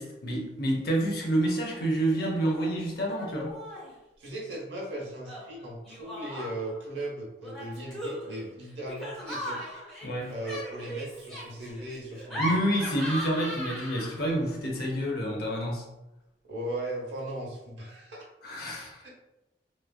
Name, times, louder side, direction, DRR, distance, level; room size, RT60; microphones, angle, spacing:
voice 1, 0.0-3.5 10.0-10.3 12.4-15.9 18.4-19.0, right 1 dB, 55° left, -1 dB, 0.7 m, -28 dB
Laughter, 1.4-1.8 2.1-2.7 3.1-3.9 5.2-6.8 7.4-14.4, equal, 5° left, 0.8 m, -38 dB
voice 2, 4.2-9.7 10.3-12.6 16.4-18.3 19.0-19.1, right 1 dB, 80° right, -2 dB, 0.9 m, -37 dB
3.0 x 2.4 x 2.2 m, 0.95 s
head